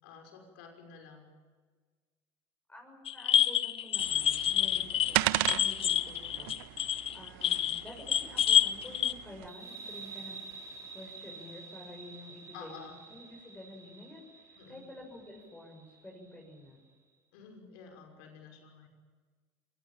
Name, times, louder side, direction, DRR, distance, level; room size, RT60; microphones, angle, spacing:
voice 1, 0.0-1.3 6.1-6.3 12.5-12.9 14.6-14.8 17.3-18.9, left 6 dB, 90° left, 3 dB, 5.9 m, -51 dB
voice 2, 2.7-10.4 10.9-16.8, left 1 dB, 15° left, 0 dB, 7.1 m, -50 dB
sound 1, 3.1-9.1, left 10 dB, 55° left, 1.1 m, -28 dB
sound 2, 4.0-9.5, right 19 dB, 85° right, 0.7 m, -36 dB
sound 3, 9.5-16.7, right 4 dB, 25° right, 6.7 m, -49 dB
25.0 x 20.5 x 8.9 m, 1.4 s
supercardioid pair, 80°, 12 cm